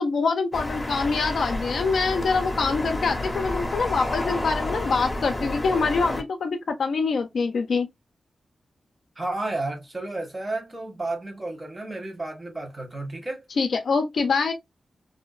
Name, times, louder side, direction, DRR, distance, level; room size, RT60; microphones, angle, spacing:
voice 1, 0.0-7.9 13.6-14.5, left 4 dB, 75° left, 0.4 m, -25 dB
sound 1, 0.5-6.2, left 1 dB, 15° left, 0.7 m, -30 dB
voice 2, 9.2-13.4, right 2 dB, 25° right, 1.1 m, -32 dB
2.6 x 2.1 x 2.3 m
cardioid pair, 80°, 0 cm